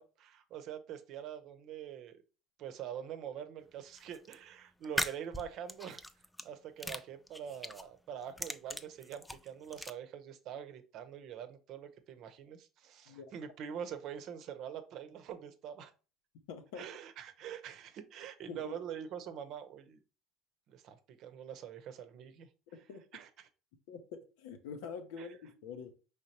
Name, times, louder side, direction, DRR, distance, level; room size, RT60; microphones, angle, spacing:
voice 1, 0.0-2.2 2.6-6.0 6.4-15.9 16.7-20.0 20.7-22.5 23.1-23.5 25.2-25.4, right 9 dB, 60° right, 8 dB, 0.8 m, -45 dB
sound 1, 4.0-4.3 4.8-6.5 6.8-7.9 8.2-9.9, left 1 dB, 5° left, 0.5 m, -39 dB
voice 2, 16.5-16.8 18.5-18.7 22.9-23.0 23.9-24.0 24.4-25.9, left 6 dB, 75° left, 7 dB, 0.8 m, -45 dB
5.1 x 3.5 x 2.9 m, 0.34 s
hypercardioid pair, 70°, 0 cm